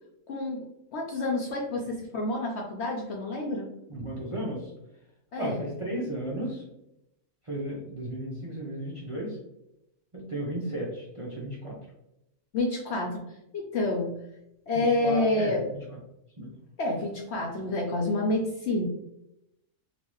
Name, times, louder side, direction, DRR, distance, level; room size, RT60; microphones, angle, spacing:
voice 1, 0.3-0.7 0.9-3.7 5.3-5.7 12.5-14.2 14.7-15.7 16.8-18.9, left 2 dB, 65° left, 0 dB, 0.7 m, -28 dB
voice 2, 3.9-4.7 5.4-6.6 7.5-9.4 10.1-11.8 14.7-15.8 16.4-16.5, right 1 dB, 35° right, -4 dB, 0.5 m, -34 dB
3.9 x 2.5 x 3.0 m, 0.84 s
omnidirectional pair, 1.5 m